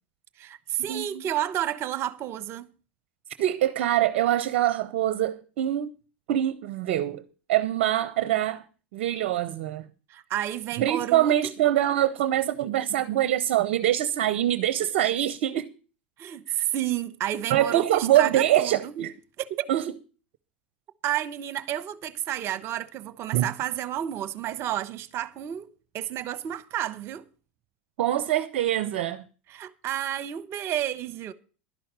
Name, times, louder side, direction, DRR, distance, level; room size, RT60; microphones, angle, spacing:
voice 1, 0.4-2.7 10.1-11.3 16.2-18.9 19.4-19.7 21.0-27.3 29.5-31.3, right 12 dB, 45° right, 1.0 m, -31 dB
voice 2, 0.9-1.2 3.4-6.0 6.3-8.6 8.9-9.9 10.8-15.7 16.5-16.6 17.5-19.1 19.7-19.9 23.3-23.5 28.0-29.2, right 12 dB, 60° right, 0.7 m, -24 dB
12.0 x 5.7 x 8.8 m
hypercardioid pair, 90°, 6 cm